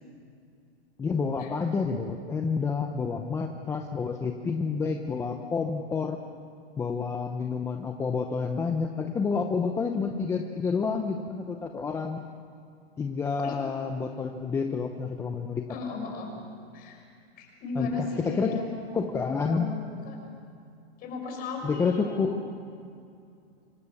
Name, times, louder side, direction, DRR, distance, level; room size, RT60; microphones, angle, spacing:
voice 1, 1.0-6.2 6.8-12.2 13.0-15.6 17.8-18.6 18.9-19.7 21.6-22.4, left 5 dB, 10° left, 4 dB, 0.7 m, -29 dB
voice 2, 15.7-16.3 16.7-17.0 17.4-18.9 19.5-20.2 21.0-22.3, left 3 dB, 30° left, 2 dB, 6.1 m, -36 dB
26.0 x 25.5 x 7.2 m, 2.4 s
hypercardioid pair, 155°, 32 cm